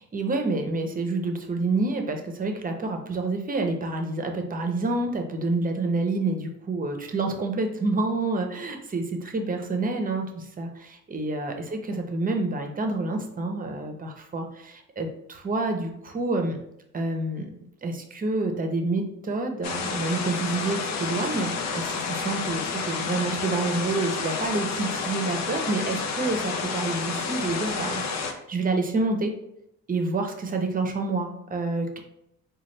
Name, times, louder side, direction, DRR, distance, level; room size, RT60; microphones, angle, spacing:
voice 1, 0.0-16.6 16.9-17.5 17.8-29.4 29.9-32.0, right 3 dB, 30° right, 4 dB, 0.7 m, -28 dB
sound 1, 19.6-28.3, left 5 dB, 65° left, 0.6 m, -30 dB
3.9 x 2.3 x 3.2 m, 0.78 s
cardioid pair, 90°, 30 cm